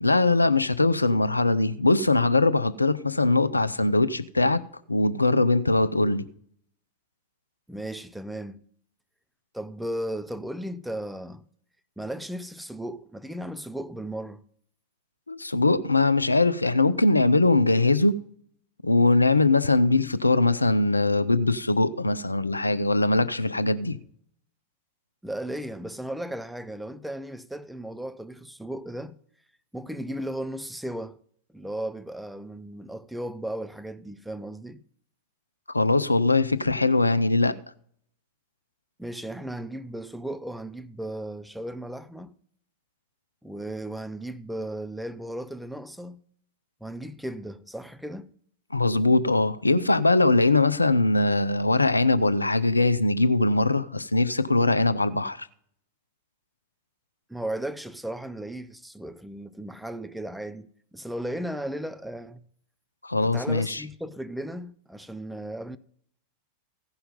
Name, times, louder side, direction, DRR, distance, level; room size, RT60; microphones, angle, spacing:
voice 1, 0.0-6.2 15.3-18.2 18.8-24.0 35.7-37.5 48.7-55.5 63.0-63.8, left 2 dB, 80° left, 0.5 m, -21 dB
voice 2, 7.7-8.6 9.5-11.4 12.0-14.4 25.2-29.2 29.7-31.2 31.5-34.8 39.0-42.4 43.4-46.2 46.8-48.3 57.3-62.4 63.2-65.8, right 1 dB, ahead, 0.6 m, -35 dB
15.5 x 5.8 x 5.3 m
figure-of-eight pair, 90°, 0 cm